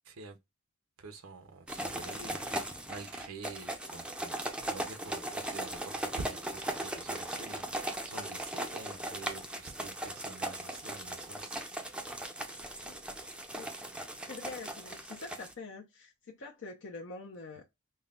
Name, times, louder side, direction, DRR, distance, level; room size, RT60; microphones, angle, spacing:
voice 1, 0.0-0.4 1.0-11.6, right 3 dB, 75° right, 0.7 m, -47 dB
sound 1, 1.7-15.5, right 1 dB, 5° right, 0.5 m, -38 dB
voice 2, 14.3-17.6, left 3 dB, 60° left, 0.7 m, -45 dB
5.5 x 2.2 x 2.4 m
head